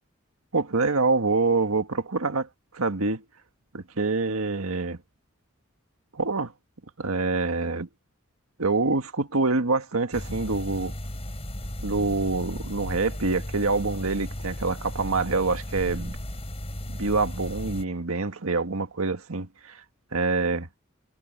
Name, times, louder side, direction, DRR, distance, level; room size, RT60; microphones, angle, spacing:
voice 1, 0.5-2.5 2.7-3.2 3.7-5.0 6.1-6.5 7.0-7.9 8.6-10.9 11.8-16.2 16.9-19.8 20.1-20.6, right 3 dB, 85° right, 1.6 m, -26 dB
sound 1, 10.1-17.8, equal, 30° left, 5.9 m, -35 dB
head